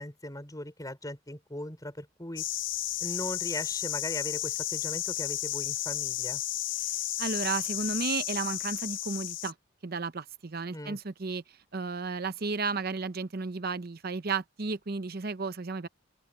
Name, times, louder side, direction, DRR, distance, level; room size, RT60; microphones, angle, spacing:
voice 1, 0.0-2.4 3.0-6.4 10.7-11.0, left 1 dB, 20° left, 5.5 m, -39 dB
sound 1, 2.4-9.5, left 14 dB, 65° left, 0.6 m, -33 dB
voice 2, 7.2-9.5 9.8-11.4 11.7-15.9, right 4 dB, 50° right, 0.8 m, -33 dB
open air
head